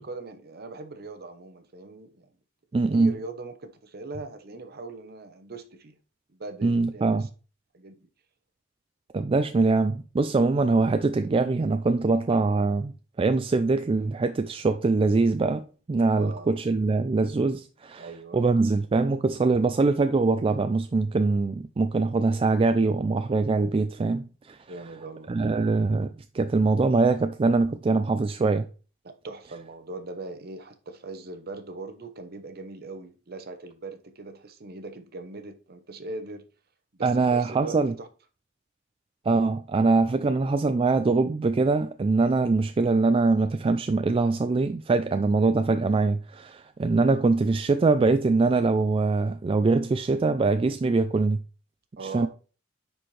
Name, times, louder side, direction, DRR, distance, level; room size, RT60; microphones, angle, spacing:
voice 1, 0.0-2.3 2.9-6.0 6.4-7.3 7.7-8.1 16.1-16.5 18.0-18.4 24.7-25.3 29.0-36.5 36.9-38.1 52.0-52.3, right 3 dB, 55° right, 0.9 m, -40 dB
voice 2, 2.7-3.1 6.6-7.3 9.1-12.9 13.2-15.6 15.9-18.1 18.3-24.6 25.3-26.1 26.3-28.6 37.0-37.9 39.3-51.4 52.1-52.3, right 3 dB, 30° right, 0.3 m, -23 dB
9.9 x 4.4 x 3.2 m
head